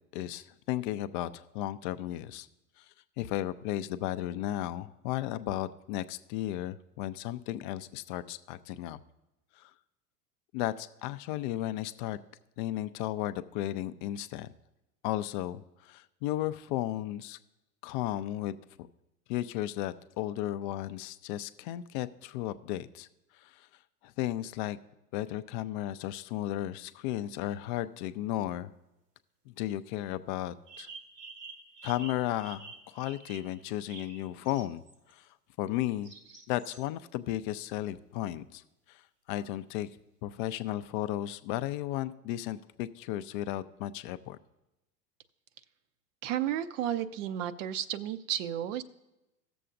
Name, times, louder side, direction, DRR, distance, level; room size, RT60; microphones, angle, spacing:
voice 1, 0.1-2.5 3.2-9.0 9.6-9.7 10.5-12.2 12.6-14.5 15.0-17.4 17.8-18.5 19.3-23.1 23.4-23.5 24.0-24.8 25.1-28.7 29.5-30.9 31.8-34.8 35.2-35.3 35.6-36.1 36.5-38.6 38.9-39.0 39.3-39.9 40.2-44.4, left 14 dB, 35° left, 13 dB, 0.4 m, -34 dB
sound 1, 27.7-27.8 30.7-35.1 36.0-36.8, right 4 dB, 80° right, 1.5 m, -49 dB
voice 2, 46.2-48.8, right 11 dB, 50° right, 13 dB, 0.6 m, -32 dB
17.5 x 6.9 x 2.5 m, 0.96 s
figure-of-eight pair, 90°, 48 cm